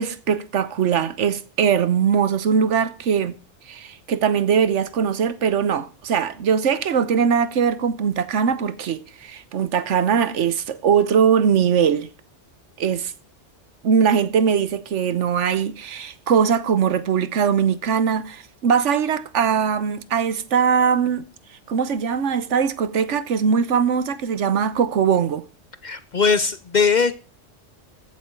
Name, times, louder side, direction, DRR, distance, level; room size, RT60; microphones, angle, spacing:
voice 1, 0.0-3.3 3.7-12.1 12.8-13.1 13.8-21.2 21.7-25.4, right 7 dB, 75° right, 1.2 m, -21 dB
voice 2, 25.8-27.1, left 5 dB, 45° left, 0.7 m, -20 dB
14.5 x 8.4 x 4.5 m
omnidirectional pair, 1.3 m